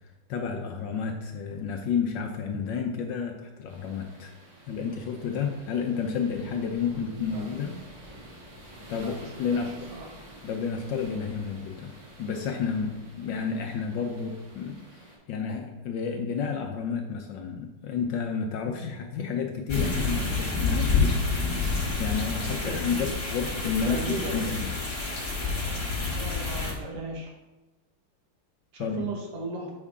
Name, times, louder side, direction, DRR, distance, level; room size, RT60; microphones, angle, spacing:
voice 1, 0.3-4.3 4.7-7.8 8.9-9.9 10.4-21.2 22.0-24.0 24.3-24.7 28.8-29.1, left 6 dB, 70° left, 3 dB, 1.1 m, -31 dB
sound 1, 3.7-15.2, equal, 45° right, 2.6 m, -49 dB
voice 2, 6.9-7.5 8.9-10.1 22.6-23.0 23.8-24.6 26.1-27.3 28.7-29.7, right 2 dB, 85° right, -1 dB, 2.3 m, -37 dB
sound 2, 19.7-26.7, left 4 dB, 20° left, 0.8 m, -28 dB
7.4 x 5.4 x 3.6 m, 1.1 s
omnidirectional pair, 2.4 m